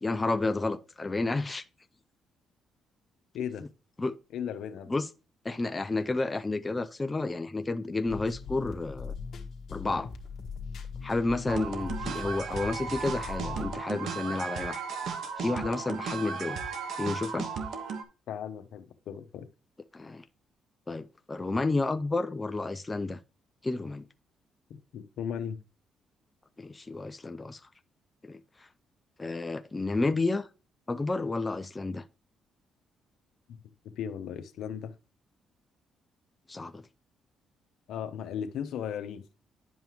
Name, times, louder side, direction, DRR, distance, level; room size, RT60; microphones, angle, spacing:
voice 1, 0.0-1.6 4.0-4.1 4.9-5.1 5.4-9.1 9.7-10.1 11.0-14.8 15.4-16.6 17.0-17.5 19.9-20.2 20.9-23.2 23.6-24.1 26.6-27.6 28.2-28.7 29.2-30.5 30.9-32.0 36.5-36.8, left 3 dB, 20° left, 0.5 m, -31 dB
voice 2, 3.3-3.6 4.3-4.9 11.5-11.7 18.3-19.5 24.7-25.6 33.5-33.6 34.0-34.9 37.9-39.2, left 8 dB, 80° left, 0.9 m, -36 dB
sound 1, 8.0-13.7, left 5 dB, 65° left, 1.4 m, -40 dB
sound 2, 11.5-18.0, right 5 dB, 70° right, 1.3 m, -35 dB
10.5 x 5.5 x 3.0 m
cardioid pair, 90°, 0 cm